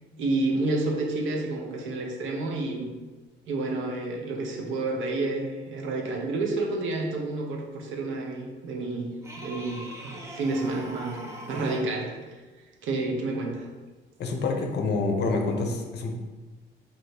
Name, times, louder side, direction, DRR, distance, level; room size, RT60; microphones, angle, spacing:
voice 1, 0.2-2.9 3.5-9.1 9.4-12.4 12.8-13.7, right 2 dB, 75° right, 0 dB, 0.7 m, -30 dB
sound 1, 9.2-12.0 14.4-14.5, equal, 15° right, 0.6 m, -41 dB
voice 2, 14.2-16.1, left 3 dB, 60° left, 3 dB, 0.5 m, -27 dB
3.0 x 2.6 x 3.2 m, 1.3 s
cardioid pair, 90°, 20 cm